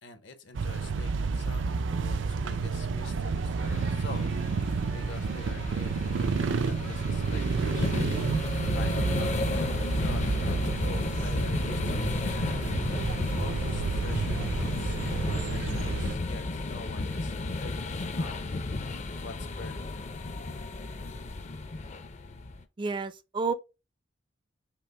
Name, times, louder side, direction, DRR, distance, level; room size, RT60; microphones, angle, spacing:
voice 1, 0.0-4.3 4.6-12.8 13.4-17.3 17.6-18.5 19.2-20.1, left 3 dB, 70° left, 0.9 m, -46 dB
sound 1, 0.5-16.1, right 4 dB, 80° right, 0.4 m, -30 dB
sound 2, 3.6-22.6, left 2 dB, 40° left, 0.5 m, -33 dB
voice 2, 22.8-23.5, right 4 dB, 25° right, 0.4 m, -30 dB
5.9 x 2.0 x 4.1 m
head